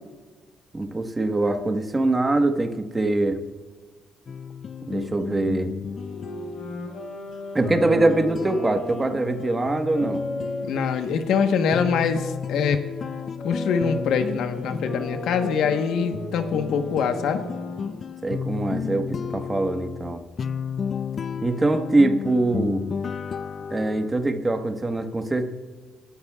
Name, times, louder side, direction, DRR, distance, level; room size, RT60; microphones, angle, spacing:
voice 1, 0.7-3.4 4.9-5.7 7.5-10.2 18.2-20.2 21.4-22.8 23.7-25.5, right 2 dB, 20° right, 5 dB, 1.3 m, -23 dB
sound 1, 4.3-24.1, left 7 dB, 50° left, 0.3 m, -33 dB
Wind instrument woodwind instrument, 6.0-11.8 12.6-18.0, left 2 dB, 65° left, 4.1 m, -36 dB
voice 2, 10.6-12.8 13.4-17.4, left 6 dB, 80° left, 7 dB, 1.1 m, -24 dB
29.5 x 13.0 x 2.4 m, 1.4 s
cardioid pair, 90°, 0 cm